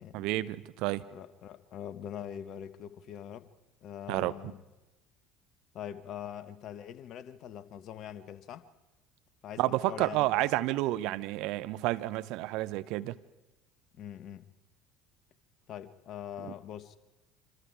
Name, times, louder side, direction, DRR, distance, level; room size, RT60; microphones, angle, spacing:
voice 1, 0.1-1.0 4.1-4.3 9.6-13.2, right 17 dB, 55° right, 0.8 m, -30 dB
voice 2, 1.1-3.5 3.8-4.6 5.7-8.7 9.4-10.5 14.0-14.5 15.7-17.0, left 9 dB, 45° left, 1.3 m, -43 dB
26.0 x 26.0 x 4.8 m
figure-of-eight pair, 60°, 0 cm